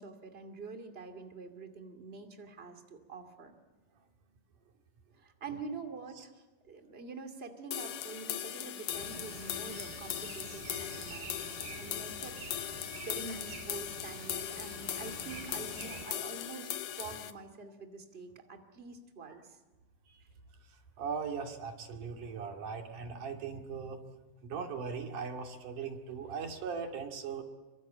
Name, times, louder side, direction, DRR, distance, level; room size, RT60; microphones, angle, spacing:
voice 1, 0.0-3.5 5.2-16.7 17.0-19.6, right 4 dB, 20° right, 6 dB, 2.3 m, -46 dB
sound 1, 7.7-17.3, left 11 dB, 75° left, 2.6 m, -39 dB
sound 2, 8.9-16.1, right 5 dB, 85° right, 4.6 m, -47 dB
voice 2, 20.7-24.0 24.4-27.4, right 5 dB, 65° right, 3 dB, 3.8 m, -39 dB
26.0 x 24.5 x 8.7 m, 1.2 s
omnidirectional pair, 3.9 m